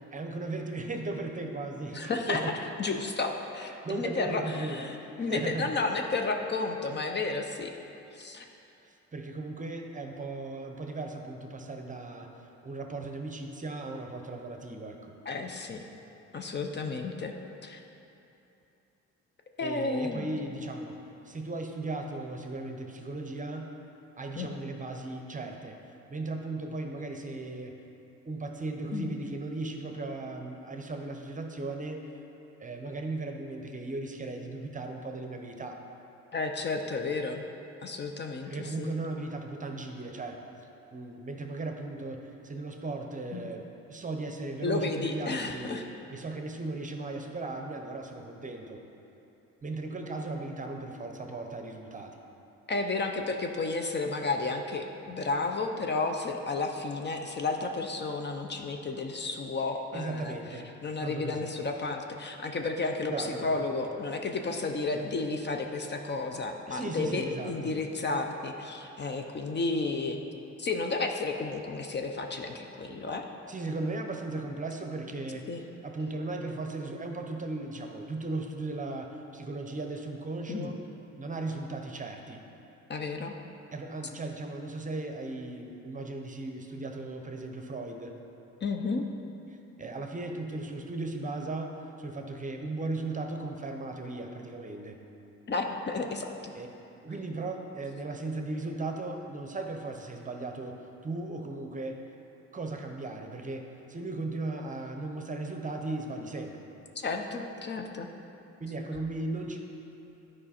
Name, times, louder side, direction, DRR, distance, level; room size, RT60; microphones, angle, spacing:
voice 1, 0.1-2.6 3.6-4.9 5.2-5.7 8.8-15.1 19.6-21.0 21.2-23.7 24.2-25.8 26.1-27.7 28.2-32.0 32.6-35.8 38.4-40.5 40.9-45.8 46.1-48.8 49.6-52.2 59.9-60.7 61.0-61.5 63.1-63.6 66.7-67.8 73.5-75.5 75.8-80.8 81.2-82.4 83.7-88.1 89.8-95.0 96.5-96.7 97.0-100.8 101.0-102.0 102.5-106.6 108.6-109.6, right 2 dB, 25° right, 4 dB, 0.7 m, -37 dB
voice 2, 1.9-2.4 2.8-7.7 8.1-8.4 15.3-15.8 16.3-17.3 17.6-17.8 19.6-20.3 24.4-24.5 28.9-29.1 36.3-37.4 37.8-39.0 43.3-43.5 44.6-45.8 52.7-60.3 60.8-70.2 70.6-73.2 75.5-75.6 80.5-80.7 82.9-83.3 88.6-89.1 95.5-96.5 107.0-108.1, left 3 dB, 35° left, 4 dB, 0.6 m, -32 dB
10.0 x 4.9 x 4.3 m, 3.0 s
cardioid pair, 90°, 30 cm